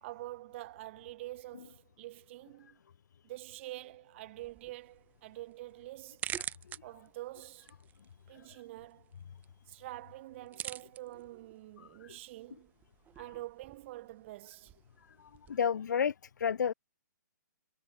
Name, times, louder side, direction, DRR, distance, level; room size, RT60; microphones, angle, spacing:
voice 1, 0.0-2.8 3.2-6.3 6.8-7.7 8.3-9.1 9.7-12.7 13.2-14.8, right 17 dB, 40° right, 1.5 m, -46 dB
sound 1, 4.4-15.6, right 11 dB, 15° right, 1.1 m, -48 dB
voice 2, 15.2-16.7, left 7 dB, 70° left, 1.0 m, -31 dB
hypercardioid pair, 135°, 10 cm